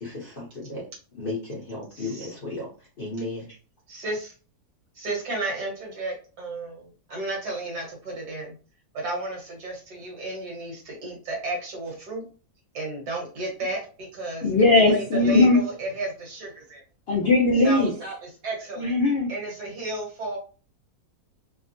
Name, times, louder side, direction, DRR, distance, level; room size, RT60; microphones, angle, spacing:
voice 1, 0.0-0.8 1.2-2.7 3.0-3.4, left 2 dB, 45° left, -4 dB, 0.8 m, -34 dB
voice 2, 2.0-2.3 3.9-4.3 5.0-8.5 8.9-12.2 12.7-14.5 14.7-16.8 17.6-19.0 19.3-20.4, right 2 dB, 70° right, -1 dB, 1.8 m, -33 dB
voice 3, 14.4-15.6 17.1-17.9 18.8-19.3, left 2 dB, 90° left, -2 dB, 0.5 m, -19 dB
3.5 x 2.1 x 2.5 m, 0.37 s
omnidirectional pair, 1.8 m